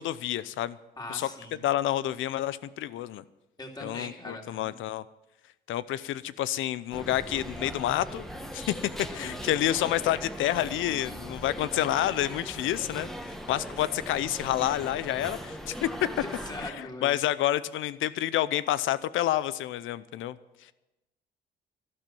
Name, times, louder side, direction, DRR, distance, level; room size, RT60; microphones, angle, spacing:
voice 1, 0.0-0.8 1.1-1.3 1.6-3.2 3.8-5.0 5.7-8.2 8.5-8.7 9.1-15.9 16.6-20.4, left 13 dB, 85° left, 17 dB, 0.7 m, -29 dB
voice 2, 1.0-1.6 3.6-4.8 9.1-9.5 16.1-17.1, left 1 dB, 20° left, 1 dB, 3.2 m, -41 dB
sound 1, 6.9-16.7, equal, ahead, 1.6 m, -39 dB
12.5 x 12.0 x 7.6 m, 0.99 s
cardioid pair, 90°, 20 cm